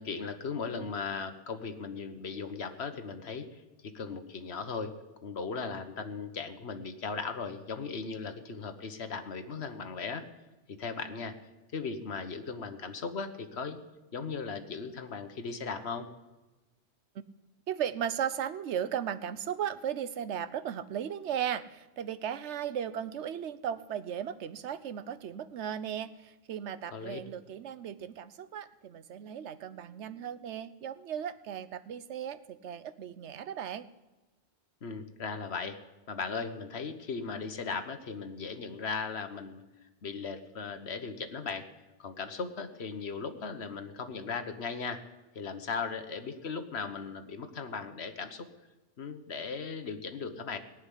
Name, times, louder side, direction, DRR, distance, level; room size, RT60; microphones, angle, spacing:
voice 1, 0.0-4.9 5.2-10.3 10.7-11.3 11.7-13.8 14.1-16.1 26.9-27.2 34.8-35.8 36.1-39.6 40.0-41.7 42.0-45.0 45.3-48.5 49.0-50.6, left 5 dB, 70° left, 8 dB, 1.4 m, -37 dB
voice 2, 17.7-33.9, right 9 dB, 85° right, 13 dB, 1.0 m, -36 dB
18.5 x 6.5 x 10.0 m, 1.1 s
omnidirectional pair, 1.2 m